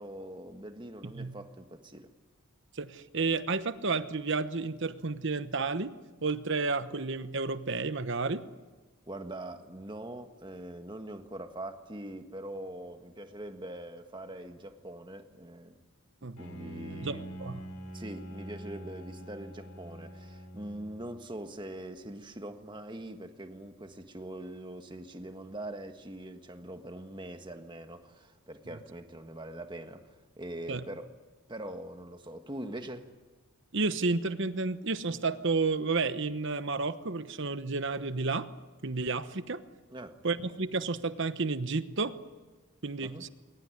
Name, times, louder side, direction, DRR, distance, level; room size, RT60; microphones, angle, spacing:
voice 1, 0.0-2.1 9.1-15.8 16.4-17.4 17.9-31.1 31.5-33.1 39.9-40.2 43.0-43.2, right 1 dB, 20° right, 7 dB, 1.5 m, -43 dB
voice 2, 1.0-1.3 2.7-5.9 6.2-8.4 16.2-16.4 17.0-17.6 30.7-30.8 33.7-38.5 38.8-39.6 40.2-42.1 42.8-43.3, right 3 dB, 55° right, 12 dB, 1.0 m, -31 dB
Bowed string instrument, 16.4-21.3, right 1 dB, 85° left, 3.4 m, -45 dB
22.0 x 19.5 x 9.7 m, 1.3 s
head